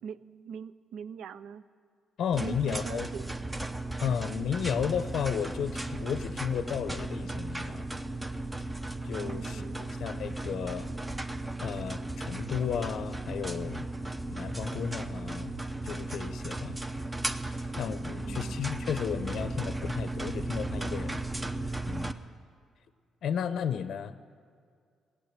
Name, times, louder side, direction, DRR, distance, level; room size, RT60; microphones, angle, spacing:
voice 1, 0.0-1.6 2.4-3.3 4.1-4.2 9.2-9.9 18.1-18.7, right 7 dB, 75° right, 16 dB, 0.5 m, -42 dB
voice 2, 2.2-3.1 4.0-7.9 9.0-9.6 10.0-10.9 11.6-13.9 14.3-16.8 17.7-21.2 21.9-22.2 23.2-24.3, left 8 dB, 70° left, 12 dB, 0.6 m, -33 dB
sound 1, 2.3-22.1, right 2 dB, 15° right, 0.7 m, -35 dB
17.0 x 8.4 x 8.8 m, 2.2 s
cardioid pair, 90°, 0 cm